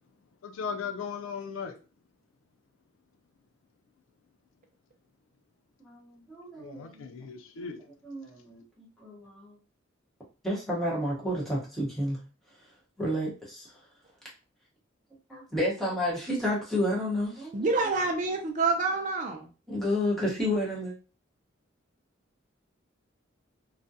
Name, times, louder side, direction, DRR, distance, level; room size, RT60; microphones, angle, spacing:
voice 1, 0.4-1.7 6.6-7.8, left 6 dB, 80° left, 0.4 m, -37 dB
voice 2, 5.8-7.1 7.6-7.7 8.0-9.5 10.4-12.2 13.0-13.7 15.3-17.7 19.7-20.9, left 1 dB, ahead, 0.9 m, -31 dB
voice 3, 17.5-19.5, right 3 dB, 40° right, 0.4 m, -27 dB
2.4 x 2.1 x 2.7 m
head